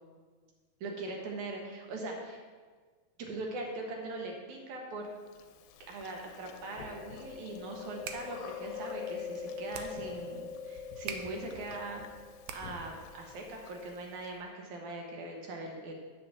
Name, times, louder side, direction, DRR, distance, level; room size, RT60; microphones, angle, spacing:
voice 1, 0.8-2.4 3.2-5.1 5.9-12.0 12.5-15.9, right 2 dB, 65° right, 1 dB, 2.4 m, -41 dB
Chewing mastication, 5.3-14.3, left 6 dB, 80° left, 2.2 m, -44 dB
sound 1, 7.9-13.0, right 7 dB, 80° right, 2.3 m, -47 dB
8.6 x 5.9 x 6.8 m, 1.5 s
omnidirectional pair, 4.2 m